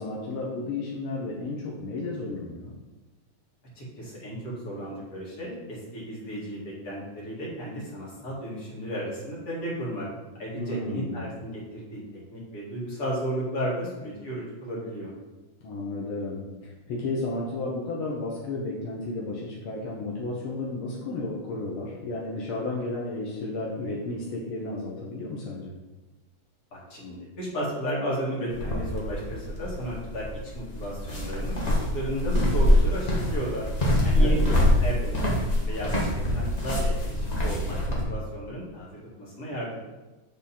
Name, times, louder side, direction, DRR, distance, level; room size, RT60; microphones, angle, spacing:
voice 1, 0.0-2.7 10.5-11.3 15.6-25.7 34.2-34.6, left 2 dB, 80° left, -4 dB, 1.8 m, -33 dB
voice 2, 3.8-10.1 10.4-12.0 12.3-15.1 26.7-30.3 30.5-33.6 34.0-34.4 34.8-38.9 39.2-39.8, equal, 45° left, -6 dB, 2.5 m, -34 dB
sound 1, 28.5-38.0, left 1 dB, 25° left, 0.9 m, -25 dB
8.8 x 3.6 x 4.2 m, 1.2 s
omnidirectional pair, 2.3 m